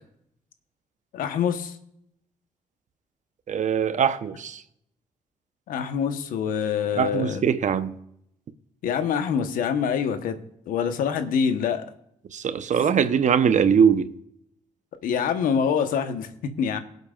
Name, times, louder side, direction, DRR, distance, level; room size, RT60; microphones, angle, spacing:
voice 1, 1.1-1.8 5.7-7.4 8.8-10.4 10.7-11.8 15.0-16.8, left 7 dB, 85° left, 1.1 m, -25 dB
voice 2, 3.5-4.6 7.0-7.9 12.3-14.1, right 7 dB, 60° right, 0.9 m, -21 dB
18.5 x 8.1 x 2.4 m
supercardioid pair, 60°, 14 cm